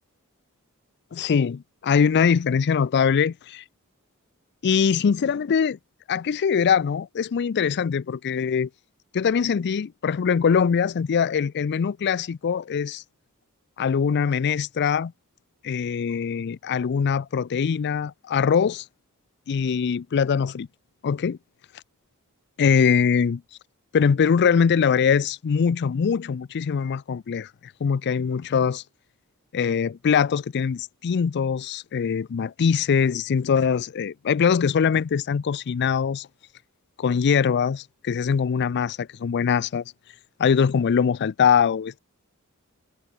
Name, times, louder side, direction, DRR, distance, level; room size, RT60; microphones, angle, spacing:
voice 1, 1.1-3.6 4.6-5.8 6.1-8.7 9.1-13.0 13.8-15.1 15.6-18.8 19.5-20.7 21.0-21.4 22.6-23.4 23.9-27.5 27.8-28.8 29.5-36.3 37.0-39.8 40.4-42.0, left 6 dB, 50° left, 0.4 m, -22 dB
head